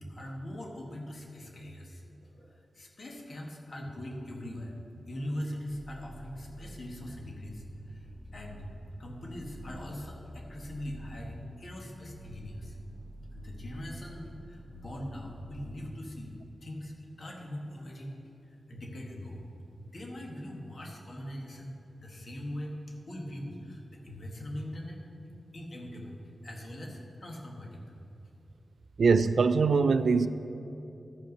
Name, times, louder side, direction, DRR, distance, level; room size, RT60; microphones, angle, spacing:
voice 1, 0.1-4.7 5.1-8.6 9.0-12.7 13.3-16.3 16.6-18.1 18.7-19.4 19.8-21.7 22.0-25.0 25.5-27.9, left 1 dB, 55° left, 0 dB, 1.6 m, -41 dB
sound 1, 5.7-16.0, right 1 dB, 35° left, 2.0 m, -49 dB
voice 2, 29.0-30.3, right 4 dB, 70° right, 12 dB, 0.3 m, -22 dB
13.0 x 5.5 x 5.3 m, 2.8 s
cardioid pair, 70°, 0 cm